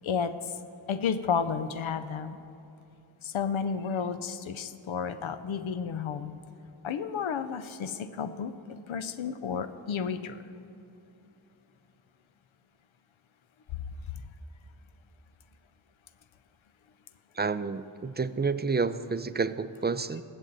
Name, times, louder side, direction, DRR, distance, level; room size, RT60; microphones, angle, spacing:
voice 1, 0.0-0.3 0.9-2.4 3.2-6.4 6.8-10.4, left 6 dB, 90° left, 11 dB, 0.6 m, -32 dB
voice 2, 17.4-20.2, right 4 dB, 25° right, 13 dB, 0.4 m, -29 dB
19.0 x 7.3 x 4.0 m, 2.9 s
cardioid pair, 40°, 46 cm